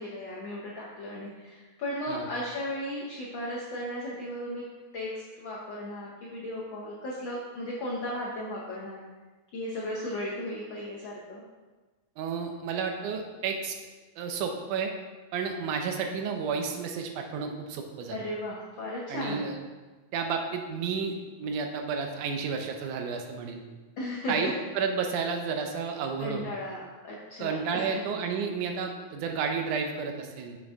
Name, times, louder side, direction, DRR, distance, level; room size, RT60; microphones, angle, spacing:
voice 1, 0.0-4.7 4.9-9.0 9.5-11.4 18.1-19.5 24.0-24.5 26.2-27.9, left 1 dB, 80° left, -4 dB, 1.0 m, -35 dB
voice 2, 12.2-13.8 14.2-14.9 15.3-18.2 19.1-19.6 20.1-23.6 24.3-26.4 27.4-30.6, right 5 dB, 90° right, 4 dB, 2.2 m, -31 dB
6.2 x 6.2 x 3.5 m, 1.3 s
omnidirectional pair, 3.4 m